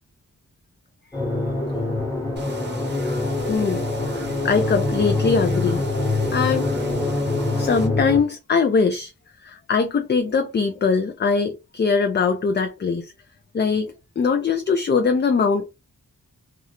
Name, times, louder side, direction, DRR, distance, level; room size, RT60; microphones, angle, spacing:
sound 1, 1.1-8.2, left 3 dB, 10° left, 1.1 m, -25 dB
sound 2, 2.4-7.9, right 3 dB, 30° right, 0.7 m, -35 dB
voice 1, 3.5-3.8 4.4-5.8 6.3-6.7 7.6-9.1 9.4-13.1 13.5-15.7, left 5 dB, 30° left, 0.4 m, -21 dB
2.4 x 2.1 x 2.8 m
cardioid pair, 60°, 34 cm